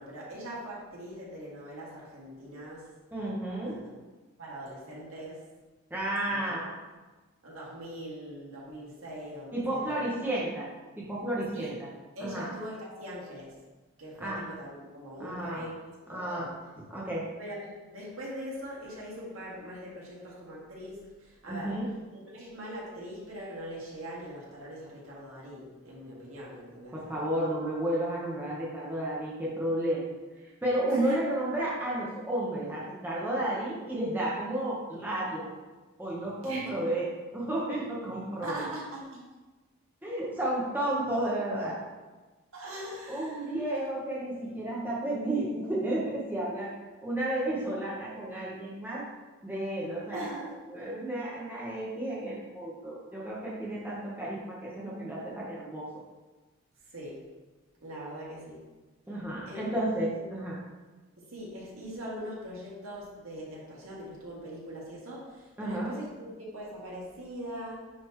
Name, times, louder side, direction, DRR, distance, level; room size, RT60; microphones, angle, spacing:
voice 1, 0.0-2.9 3.6-3.9 4.4-5.4 6.3-6.4 7.4-10.3 11.5-11.7 12.1-13.5 14.0-15.7 16.1-16.5 17.4-21.8 22.1-27.5 30.9-31.3 36.4-36.7 38.4-39.2 42.5-43.5 50.1-50.5 56.9-57.2 57.8-58.6 59.5-59.7 61.3-67.9, equal, 70° right, -5 dB, 2.1 m, -41 dB
voice 2, 3.1-3.8 5.9-6.7 9.5-10.7 11.0-11.9 12.2-12.5 14.2-14.4 15.2-15.6 16.1-16.5 16.9-17.2 21.5-21.9 26.9-30.0 30.6-35.5 36.0-38.6 40.0-41.8 43.1-46.7 47.0-49.0 49.4-55.9 59.1-60.6 65.6-65.9, right 1 dB, 10° right, -6 dB, 1.1 m, -32 dB
9.5 x 4.4 x 3.1 m, 1.2 s
head